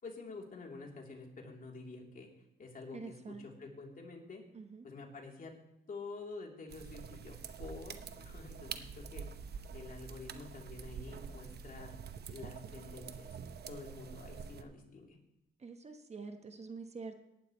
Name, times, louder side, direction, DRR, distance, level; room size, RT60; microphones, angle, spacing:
voice 1, 0.0-2.3 2.6-4.4 4.8-5.5 5.9-9.3 9.7-11.9 12.3-13.3 13.7-15.2, left 3 dB, 45° left, 0 dB, 3.4 m, -48 dB
voice 2, 2.9-3.5 4.5-4.8 15.6-17.2, right 4 dB, 35° right, 7 dB, 1.2 m, -46 dB
sound 1, 6.7-14.6, right 6 dB, 55° right, 1.0 m, -46 dB
18.0 x 12.0 x 3.2 m, 0.90 s
cardioid pair, 90°, 20 cm